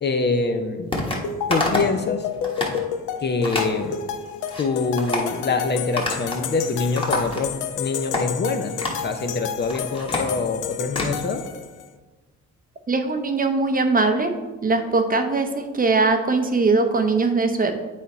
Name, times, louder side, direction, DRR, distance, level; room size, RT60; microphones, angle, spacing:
voice 1, 0.0-0.9 1.5-2.3 3.2-4.0 4.6-11.4, left 4 dB, 35° left, 7 dB, 0.7 m, -25 dB
sound 1, 0.9-1.2 1.5-2.0 2.3-2.8 3.4-3.7 4.2-4.6 5.0-5.3 6.0-6.5 6.7-7.7 8.1-8.3 8.8-9.1 9.5-11.1, left 2 dB, 15° left, 1.5 m, -27 dB
sound 2, 1.2-11.9, left 8 dB, 85° left, 0.6 m, -31 dB
voice 2, 12.9-14.3 14.6-17.7, right 3 dB, 30° right, 6 dB, 0.7 m, -21 dB
8.3 x 4.0 x 4.2 m, 1.3 s
cardioid pair, 90°, 30 cm